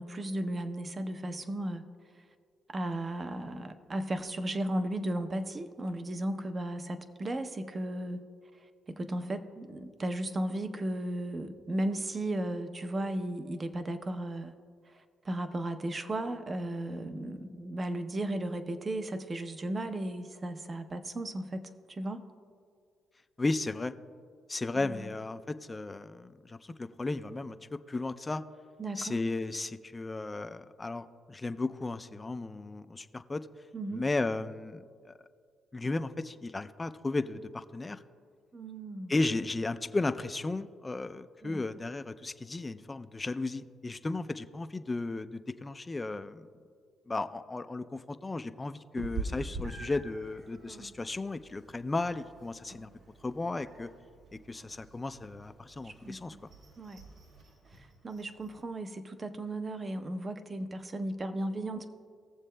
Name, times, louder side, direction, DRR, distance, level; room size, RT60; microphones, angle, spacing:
voice 1, 0.0-1.8 2.7-8.2 8.9-14.5 14.9-22.2 24.7-25.1 28.8-29.2 33.7-34.0 38.5-39.1 41.4-41.6 50.7-50.9 55.8-56.4 56.8-57.0 57.8-61.9, right 1 dB, 30° right, 9 dB, 0.6 m, -35 dB
voice 2, 23.4-23.9 24.5-28.4 29.0-33.4 33.9-35.1 35.7-38.0 39.1-46.4 47.1-52.9 53.2-53.9 54.3-56.4, left 2 dB, 20° left, 11 dB, 0.4 m, -35 dB
Meow, 49.0-58.6, right 3 dB, 70° right, 1.7 m, -45 dB
18.5 x 7.3 x 2.2 m, 2.1 s
cardioid pair, 90°, 0 cm